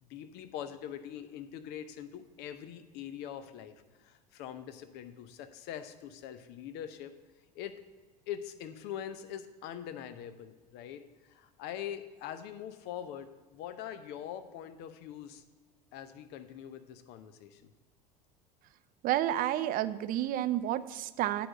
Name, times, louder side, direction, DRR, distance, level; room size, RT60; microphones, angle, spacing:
voice 1, 0.0-7.1 7.5-7.8 8.3-15.4 15.9-17.6, left 10 dB, 55° left, 10 dB, 0.8 m, -43 dB
voice 2, 19.0-21.5, right 13 dB, 45° right, 14 dB, 0.5 m, -30 dB
8.8 x 5.0 x 6.1 m, 1.3 s
hypercardioid pair, 75°, 21 cm